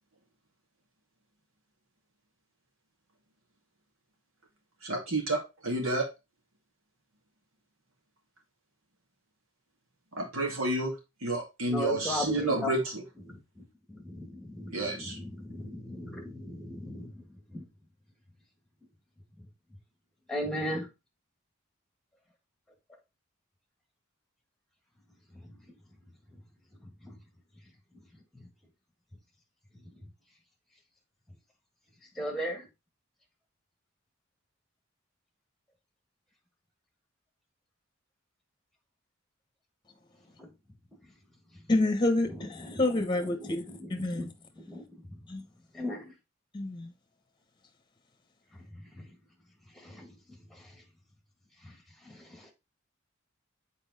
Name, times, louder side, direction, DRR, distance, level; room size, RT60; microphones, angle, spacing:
voice 1, 4.8-6.1 10.1-13.0 14.7-15.2, right 2 dB, 85° right, 2.4 m, -30 dB
voice 2, 11.7-12.7 13.2-17.7 19.4-19.8 20.3-20.9 25.3-26.0 26.3-26.5 26.7-27.2 27.5-28.5 29.7-30.1 32.0-32.7 40.4-40.5 40.9-41.2 41.5-41.7 42.2-46.1 48.5-49.2 49.7-50.8 51.6-52.5, equal, ahead, 1.5 m, -39 dB
voice 3, 41.7-44.3 45.3-45.4 46.5-46.9, left 2 dB, 20° left, 1.0 m, -28 dB
7.1 x 4.4 x 4.0 m
head